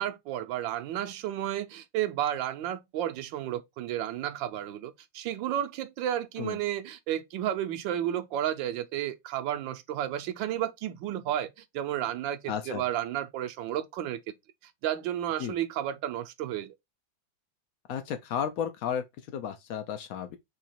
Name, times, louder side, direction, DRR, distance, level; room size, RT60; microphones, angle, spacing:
voice 1, 0.0-14.2 14.6-16.7, right 11 dB, 75° right, 1.3 m, -32 dB
voice 2, 12.5-12.8 15.4-15.5 17.9-20.4, left 8 dB, 80° left, 0.7 m, -33 dB
4.0 x 2.8 x 4.3 m
omnidirectional pair, 2.1 m